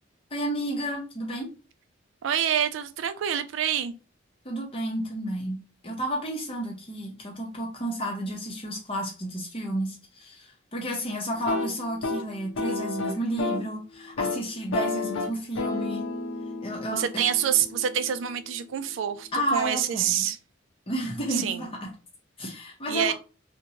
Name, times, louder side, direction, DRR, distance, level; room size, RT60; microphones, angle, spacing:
voice 1, 0.3-1.5 4.4-5.6 5.8-16.0 16.6-17.2 19.3-20.3 20.9-21.9 22.4-23.1, right 1 dB, 25° left, 0.6 m, -31 dB
voice 2, 2.2-4.0 16.9-20.4 21.3-21.7 22.9-23.1, right 9 dB, 70° right, 0.3 m, -27 dB
sound 1, 11.3-13.7 14.0-14.4 14.7-18.6, left 3 dB, 75° left, 0.6 m, -32 dB
2.9 x 2.1 x 2.7 m
head